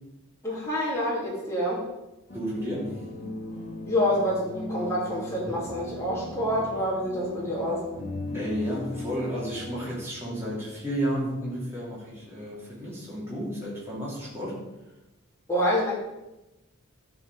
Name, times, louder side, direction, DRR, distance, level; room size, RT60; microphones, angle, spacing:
voice 1, 0.4-1.8 3.9-7.8 15.5-15.9, equal, 15° left, -6 dB, 2.8 m, -27 dB
sound 1, 2.3-9.7, left 1 dB, 40° left, 2.5 m, -38 dB
voice 2, 2.3-3.0 8.3-14.6, equal, 10° right, -7 dB, 2.9 m, -32 dB
13.0 x 4.9 x 4.8 m, 0.97 s
head